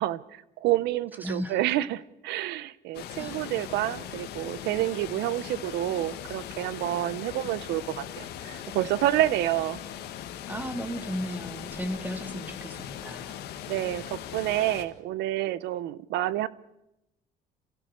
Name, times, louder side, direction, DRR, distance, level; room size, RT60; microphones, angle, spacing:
voice 1, 0.0-9.8 13.7-16.5, right 14 dB, 85° right, 0.8 m, -28 dB
voice 2, 1.2-1.6 3.2-3.4 10.5-13.4, equal, 10° right, 2.2 m, -35 dB
sound 1, 2.9-14.8, left 10 dB, 75° left, 1.9 m, -40 dB
27.5 x 16.0 x 6.6 m
cardioid pair, 110°, 17 cm